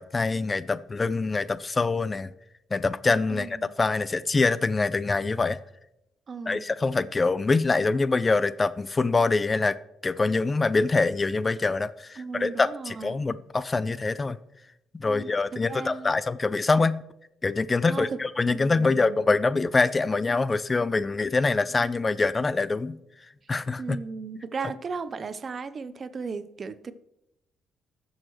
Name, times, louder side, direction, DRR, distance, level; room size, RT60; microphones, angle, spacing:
voice 1, 0.0-2.3 2.7-5.6 6.5-9.8 10.0-14.4 14.9-17.0 17.4-23.0 23.5-24.0, left 3 dB, 25° left, 0.3 m, -25 dB
voice 2, 3.3-3.7 6.3-6.7 12.2-13.1 15.1-16.1 17.9-19.2 23.8-26.9, right 5 dB, 40° right, 0.6 m, -36 dB
15.0 x 6.4 x 3.1 m
cardioid pair, 90°, 0 cm